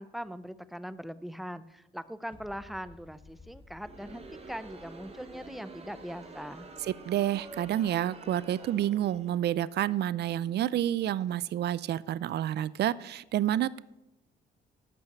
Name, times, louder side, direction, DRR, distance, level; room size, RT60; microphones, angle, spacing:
voice 1, 0.0-6.7, equal, ahead, 14 dB, 0.6 m, -41 dB
sound 1, 2.3-9.8, left 2 dB, 25° left, 1.2 m, -58 dB
Crowd, 3.7-9.5, right 3 dB, 30° right, 1.8 m, -48 dB
voice 2, 6.8-13.8, right 12 dB, 55° right, 20 dB, 0.4 m, -29 dB
12.5 x 5.7 x 7.9 m, 0.94 s
cardioid pair, 90°, 20 cm